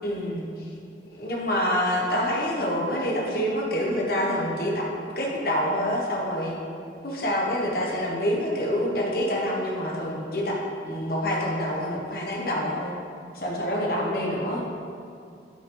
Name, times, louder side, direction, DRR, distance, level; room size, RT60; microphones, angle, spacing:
voice 1, 0.0-0.5 1.2-4.9 5.2-6.5 7.0-10.6 10.8-12.9 13.3-14.6, equal, 55° left, -3 dB, 1.2 m, -26 dB
9.9 x 5.5 x 3.8 m, 2.4 s
head